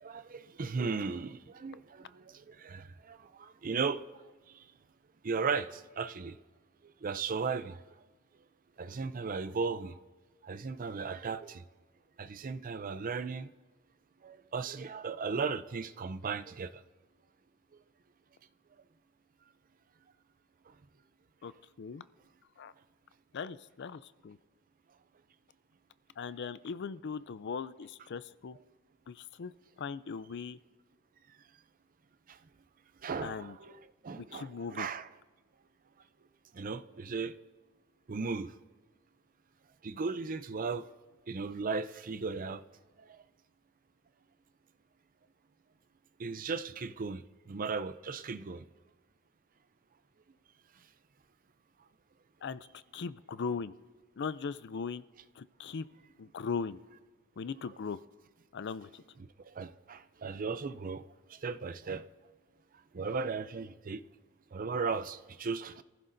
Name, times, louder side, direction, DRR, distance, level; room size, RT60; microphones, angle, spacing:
voice 1, 0.0-4.0 4.5-4.6 5.2-6.4 7.0-7.8 8.8-10.0 10.4-11.6 12.2-13.5 14.2-16.7 32.3-32.4 33.0-35.1 36.5-37.4 38.1-38.5 39.8-40.8 41.3-42.6 43.0-43.2 46.2-47.2 47.5-48.6 59.4-61.0 61.3-62.1 62.9-64.0 64.5-65.8, right 5 dB, 40° right, 0.5 m, -36 dB
voice 2, 23.3-24.4 26.2-28.6 29.1-29.5 29.8-30.6 33.2-33.6 34.2-34.9 52.4-53.7 54.2-55.0 55.4-55.8 56.2-56.8 57.4-58.0 58.5-59.0, left 5 dB, 55° left, 0.4 m, -39 dB
26.5 x 15.0 x 2.6 m
head